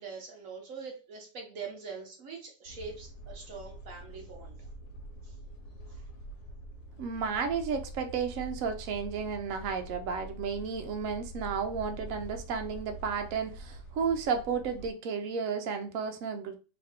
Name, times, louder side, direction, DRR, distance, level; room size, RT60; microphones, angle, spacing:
voice 1, 0.0-4.6 5.2-5.3 5.9-6.1, right 5 dB, 55° right, 1.1 m, -43 dB
sound 1, 2.7-14.9, right 1 dB, 85° left, 1.6 m, -45 dB
voice 2, 7.0-16.6, right 6 dB, 80° right, 0.7 m, -33 dB
3.5 x 2.6 x 3.5 m
omnidirectional pair, 2.0 m